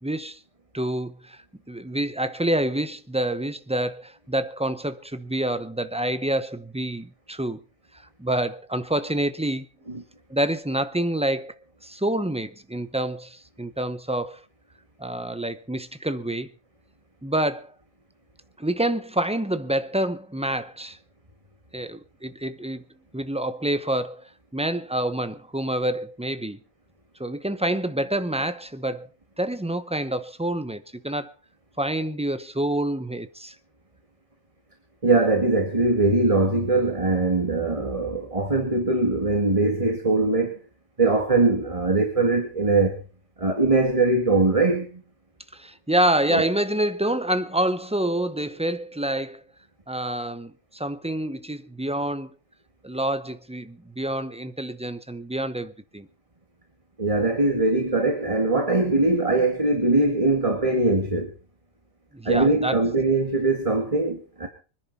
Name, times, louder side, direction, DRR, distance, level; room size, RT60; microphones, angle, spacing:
voice 1, 0.0-0.4 0.7-1.4 1.7-7.6 8.2-9.7 10.3-11.5 11.8-14.4 15.0-16.5 17.2-17.7 18.6-21.0 21.7-22.8 23.1-26.6 27.2-29.1 29.4-31.3 31.8-33.5 45.5-49.4 49.9-52.3 52.8-56.1 62.1-62.8, right 1 dB, 5° right, 0.6 m, -27 dB
voice 2, 35.0-40.6 41.0-43.0 43.4-45.0 46.3-46.4 57.0-61.3 62.3-64.5, right 2 dB, 25° right, 2.1 m, -21 dB
25.0 x 10.5 x 4.2 m
omnidirectional pair, 1.4 m